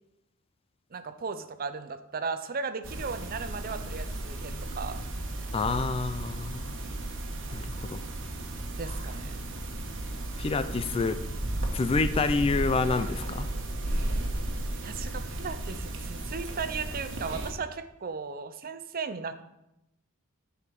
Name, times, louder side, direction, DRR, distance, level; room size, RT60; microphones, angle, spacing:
voice 1, 0.9-5.0 8.8-9.5 14.8-19.4, right 5 dB, 45° right, 11 dB, 0.6 m, -36 dB
sound 1, 2.8-17.5, right 1 dB, 60° right, 1.3 m, -34 dB
voice 2, 5.5-6.8 7.5-8.0 10.4-11.2 11.7-13.5, left 3 dB, 25° left, 11 dB, 0.4 m, -28 dB
9.9 x 4.9 x 5.2 m, 0.88 s
head